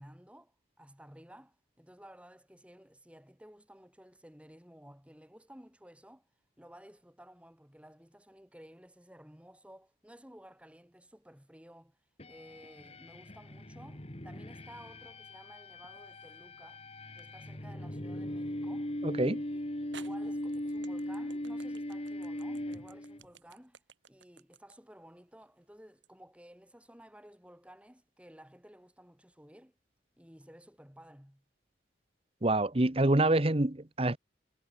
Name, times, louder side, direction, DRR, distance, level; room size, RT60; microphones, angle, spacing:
voice 1, 0.0-6.3 6.6-12.0 12.3-16.8 17.1-18.9 19.5-29.8 30.2-31.5, equal, 5° right, 4.8 m, -55 dB
sound 1, 12.2-23.3, left 1 dB, 35° left, 2.0 m, -39 dB
sound 2, 15.8-16.4 17.2-17.3 19.2-19.3 19.9-26.1, right 6 dB, 80° right, 5.4 m, -56 dB
voice 2, 19.0-19.4 32.4-34.2, right 2 dB, 30° right, 1.1 m, -26 dB
head